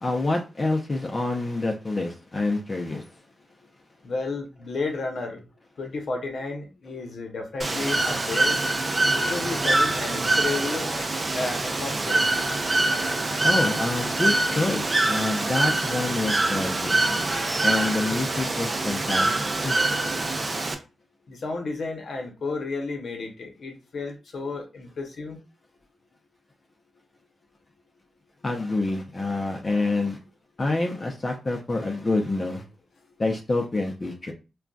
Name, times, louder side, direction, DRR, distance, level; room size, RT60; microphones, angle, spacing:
voice 1, 0.0-3.1 13.4-17.3 17.6-19.3 19.6-19.8 28.4-30.2 30.6-32.6 33.2-34.3, left 2 dB, 35° left, 0.6 m, -27 dB
voice 2, 4.0-5.4 5.8-8.6 9.1-12.2 21.3-25.4, left 3 dB, 65° left, 0.8 m, -32 dB
Bird / Water, 7.6-20.7, right 2 dB, 35° right, 0.6 m, -24 dB
3.8 x 2.3 x 2.3 m
cardioid pair, 70°, 0 cm